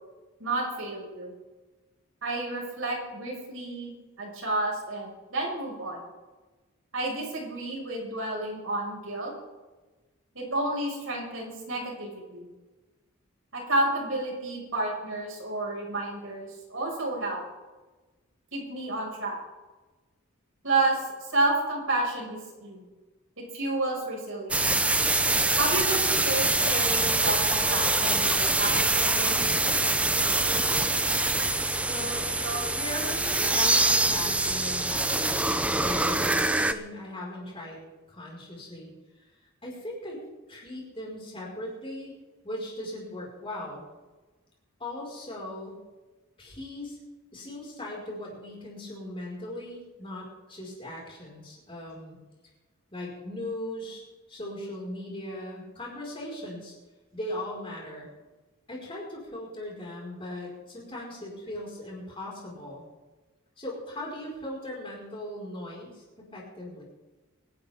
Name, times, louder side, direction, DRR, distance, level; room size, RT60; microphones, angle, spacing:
voice 1, 0.4-1.3 2.2-6.0 6.9-9.3 10.3-12.5 13.5-17.4 18.5-19.4 20.6-22.9 23.4-24.7 25.6-29.4 32.4-32.7 33.4-33.6, right 2 dB, 65° right, -1 dB, 5.8 m, -31 dB
sound 1, 24.5-36.7, right 2 dB, 5° right, 0.5 m, -24 dB
voice 2, 31.9-32.3 32.5-38.9 39.6-40.2 40.5-42.1 42.4-43.9 44.8-45.8 46.4-47.0 47.3-52.2 52.9-54.0 54.3-56.8 57.1-58.1 58.7-62.9 63.6-66.8, left 1 dB, 25° left, -3 dB, 5.2 m, -39 dB
25.5 x 11.5 x 3.7 m, 1.2 s
head